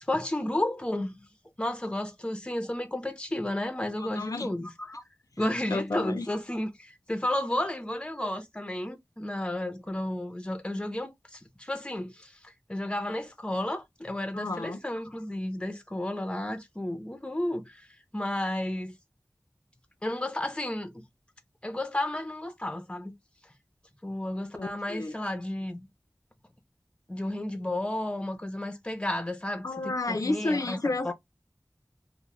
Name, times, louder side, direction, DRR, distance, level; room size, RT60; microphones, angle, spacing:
voice 1, 0.1-1.3 1.6-5.0 5.4-17.9 18.1-19.0 20.0-20.9 21.6-23.1 24.0-25.9 27.1-29.7 30.1-30.8 31.0-31.1, left 1 dB, 15° left, 0.6 m, -32 dB
voice 2, 4.0-4.5 5.7-6.3 14.3-14.8 24.5-25.1 29.6-31.1, left 2 dB, 70° left, 0.5 m, -31 dB
2.3 x 2.1 x 3.0 m
wide cardioid pair, 55°, 6 cm